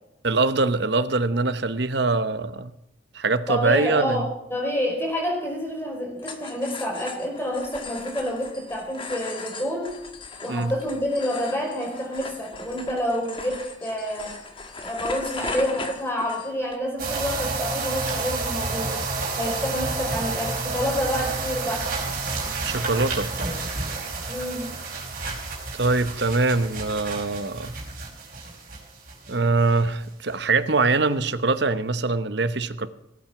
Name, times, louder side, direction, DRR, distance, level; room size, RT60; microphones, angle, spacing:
voice 1, 0.2-2.7 3.1-4.3 10.5-10.7 22.6-23.3 25.7-27.7 29.3-32.9, right 3 dB, 60° right, 12 dB, 1.0 m, -23 dB
voice 2, 3.5-9.9 10.4-14.3 14.8-19.0 19.3-21.9 24.3-24.7, equal, 10° left, -1 dB, 5.1 m, -28 dB
sound 1, 6.2-16.8, left 3 dB, 25° left, 1.4 m, -38 dB
sound 2, 17.0-29.3 29.6-29.9 30.3-30.4, right 3 dB, 45° right, 5.1 m, -30 dB
18.5 x 9.1 x 5.9 m, 0.85 s
head